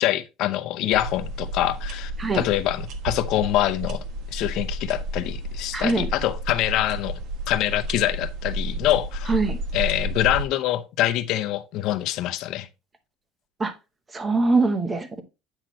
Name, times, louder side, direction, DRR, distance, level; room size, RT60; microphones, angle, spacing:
voice 1, 0.0-4.0 4.3-7.2 7.5-9.4 9.7-12.7, left 14 dB, 55° left, 0.7 m, -25 dB
sound 1, 0.9-10.5, right 1 dB, 50° right, 1.1 m, -32 dB
voice 2, 5.7-6.1 9.3-9.6 13.6-13.7 14.1-15.2, right 3 dB, 15° right, 0.9 m, -22 dB
8.9 x 5.9 x 3.1 m
cardioid pair, 170°, 0 cm